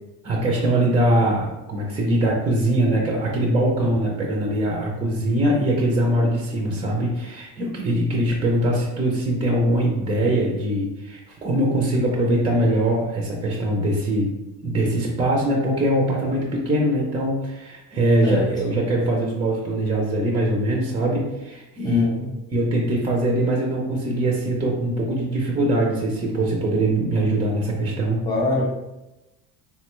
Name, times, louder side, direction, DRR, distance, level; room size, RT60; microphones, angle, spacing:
voice 1, 0.2-14.3 14.6-22.0 22.5-28.2, right 1 dB, 15° right, -1 dB, 0.3 m, -22 dB
voice 2, 21.8-22.3 28.2-28.7, left 2 dB, 10° left, -3 dB, 0.8 m, -23 dB
3.5 x 2.1 x 3.0 m, 1.0 s
cardioid pair, 140°, 35 cm